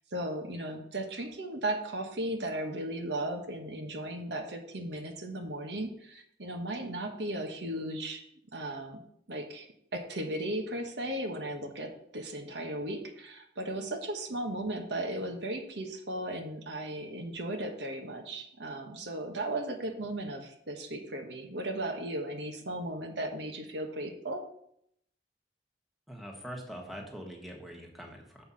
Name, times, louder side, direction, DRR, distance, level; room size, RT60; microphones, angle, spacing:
voice 1, 0.1-8.2 8.5-9.0 9.3-24.4, right 1 dB, 80° right, 3 dB, 1.3 m, -36 dB
voice 2, 26.1-28.4, equal, ahead, 0 dB, 1.4 m, -43 dB
7.0 x 5.6 x 5.7 m, 0.71 s
head